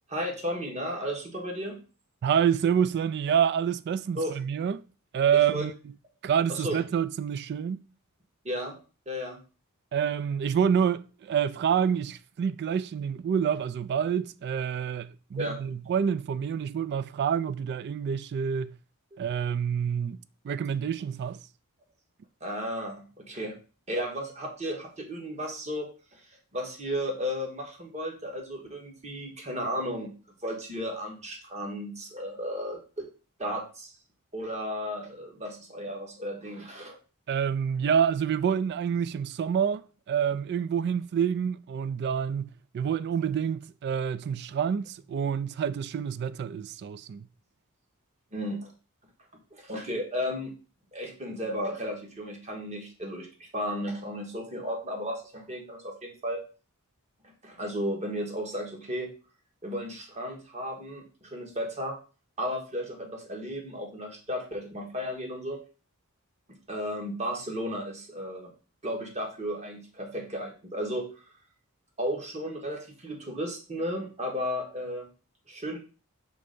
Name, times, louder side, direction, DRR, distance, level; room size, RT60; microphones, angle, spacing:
voice 1, 0.1-1.8 4.1-4.4 5.5-5.7 6.5-6.8 8.4-8.8 9.0-9.4 15.4-15.6 22.4-23.6 23.9-25.9 26.1-26.2 26.5-30.1 30.4-33.1 33.4-33.9 34.3-37.0 48.3-48.7 49.5-50.5 50.9-56.4 57.4-59.1 59.6-61.9 62.4-65.6 66.7-68.5 68.8-71.1 72.0-75.1 75.5-75.8, equal, 30° right, 1.5 m, -34 dB
voice 2, 2.2-4.8 5.1-5.7 6.2-7.8 9.9-18.7 19.2-21.4 37.3-47.3, right 8 dB, 50° right, 0.3 m, -27 dB
6.1 x 3.3 x 5.2 m
head